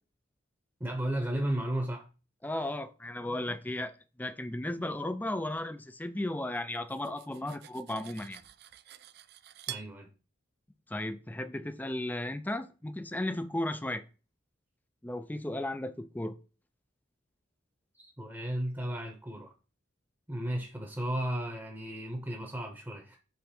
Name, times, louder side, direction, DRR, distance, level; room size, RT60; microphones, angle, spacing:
voice 1, 0.8-2.1 9.7-10.1 17.9-19.5 20.3-23.2, right 1 dB, 10° right, 0.9 m, -34 dB
voice 2, 2.4-8.4 10.9-14.0 15.0-16.4, left 1 dB, 10° left, 0.4 m, -35 dB
Cutlery silverware, 6.7-9.9, right 13 dB, 55° right, 0.4 m, -47 dB
5.6 x 3.8 x 5.9 m
head